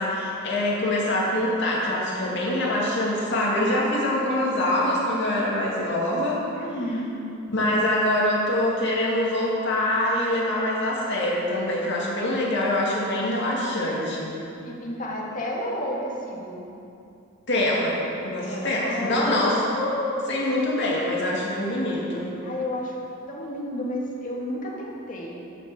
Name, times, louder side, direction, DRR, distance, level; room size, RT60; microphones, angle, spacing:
voice 1, 0.0-6.4 7.5-14.3 17.5-22.3, left 1 dB, 60° left, -4 dB, 2.2 m, -24 dB
voice 2, 6.5-7.1 14.6-16.6 18.4-19.4 22.4-23.0 23.3-25.4, left 1 dB, 40° left, -4 dB, 2.2 m, -31 dB
11.5 x 6.3 x 7.1 m, 2.7 s
head